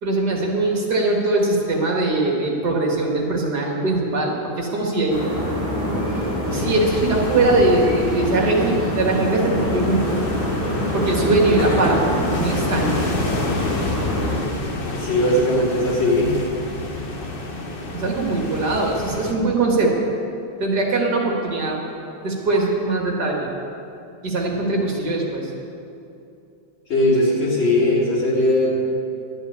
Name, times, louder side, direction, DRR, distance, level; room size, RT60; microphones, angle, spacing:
voice 1, 0.0-5.3 5.8-6.0 6.5-10.2 10.9-13.0 17.9-20.1 20.6-21.8 22.2-23.5 24.2-25.5, right 2 dB, 55° right, -1 dB, 2.3 m, -21 dB
sound 1, 5.1-14.4, left 1 dB, 60° left, 4.3 m, -25 dB
sound 2, 6.5-19.3, left 2 dB, 35° left, 1.0 m, -29 dB
voice 2, 14.9-16.4 26.9-28.7, left 1 dB, 75° left, -6 dB, 3.7 m, -19 dB
12.0 x 7.2 x 9.7 m, 2.7 s
omnidirectional pair, 2.2 m